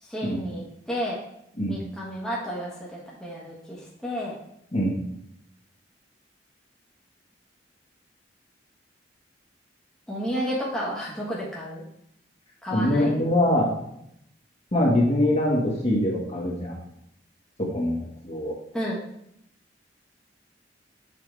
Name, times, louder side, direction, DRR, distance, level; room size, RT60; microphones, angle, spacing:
voice 1, 0.0-1.2 1.7-4.3 10.1-11.8 12.6-13.1 18.7-19.0, equal, 5° left, -6 dB, 1.5 m, -31 dB
voice 2, 12.7-13.7 14.7-16.8 17.7-18.5, left 1 dB, 35° left, -3 dB, 1.6 m, -23 dB
7.3 x 4.9 x 3.4 m, 0.75 s
head